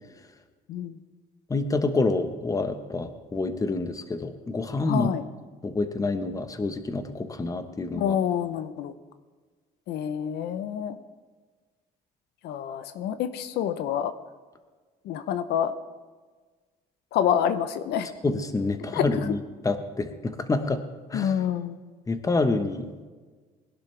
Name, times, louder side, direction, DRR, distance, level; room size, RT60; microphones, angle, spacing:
voice 1, 1.5-5.1 5.6-8.1 18.2-19.4 19.6-20.8 21.1-21.3 22.1-22.9, left 3 dB, 20° left, 8 dB, 1.2 m, -27 dB
voice 2, 4.9-5.2 7.9-8.9 9.9-10.9 12.4-14.1 15.1-15.7 17.1-18.1 18.9-19.0 21.1-21.8, left 9 dB, 80° left, 10 dB, 0.8 m, -27 dB
21.0 x 11.5 x 3.4 m, 1.4 s
cardioid pair, 110°, 17 cm